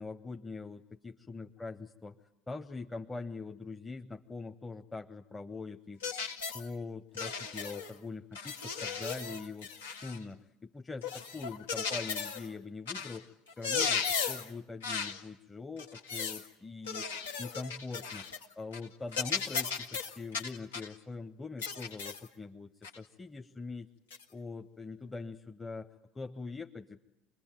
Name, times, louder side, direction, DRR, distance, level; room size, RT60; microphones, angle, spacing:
voice 1, 0.0-6.0 6.5-9.7 10.0-13.3 13.6-17.1 17.4-18.3 18.6-23.9 24.3-27.0, left 3 dB, 15° left, 4 dB, 1.1 m, -43 dB
sound 1, 6.0-6.7 7.2-7.9 8.3-10.2 11.0-12.5 12.9-13.2 13.5-14.5 14.8-15.2 15.8-16.5 16.9-18.5 18.7-18.9 19.1-20.9 21.6-22.3 22.8-23.0 24.1-24.2, left 6 dB, 75° left, 1.6 m, -36 dB
26.0 x 22.0 x 9.1 m, 0.84 s
figure-of-eight pair, 65°, 0 cm